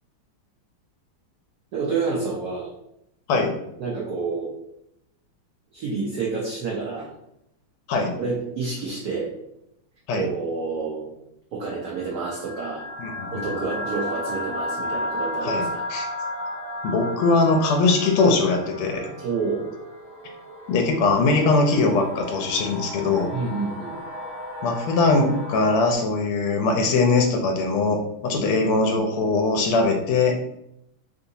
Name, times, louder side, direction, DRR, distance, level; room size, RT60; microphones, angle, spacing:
voice 1, 1.7-2.7 3.8-4.5 5.7-7.1 8.2-9.3 10.1-11.1 11.5-12.8 13.3-15.8 19.2-19.7 23.3-24.0 28.3-28.6, right 4 dB, 85° right, -3 dB, 0.8 m, -29 dB
sound 1, 11.7-25.9, left 1 dB, 50° left, 0.5 m, -34 dB
voice 2, 13.0-13.5 15.4-15.6 15.9-16.1 16.8-19.1 20.7-23.3 24.6-30.4, left 3 dB, 80° left, 2 dB, 1.4 m, -21 dB
3.6 x 2.8 x 2.6 m, 0.80 s
omnidirectional pair, 2.3 m